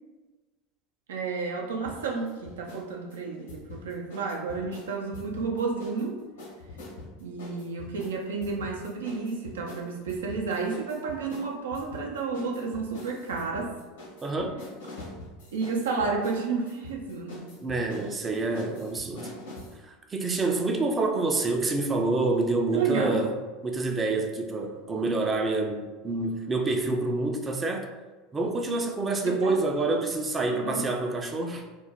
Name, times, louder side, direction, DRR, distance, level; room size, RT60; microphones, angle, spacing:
voice 1, 1.1-6.2 7.2-13.7 15.5-17.4 17.8-18.0 22.7-23.2 29.4-29.6 30.6-30.8, right 4 dB, 85° right, 0 dB, 0.5 m, -31 dB
sound 1, 1.9-2.9 3.1-6.1 6.4-19.8, left 2 dB, 85° left, 1.0 m, -44 dB
voice 2, 14.2-14.6 17.6-19.3 19.8-23.3 23.6-27.9 28.3-31.6, right 3 dB, 25° right, 3 dB, 0.5 m, -27 dB
2.5 x 2.1 x 3.4 m, 1.2 s
hypercardioid pair, 90°, 0 cm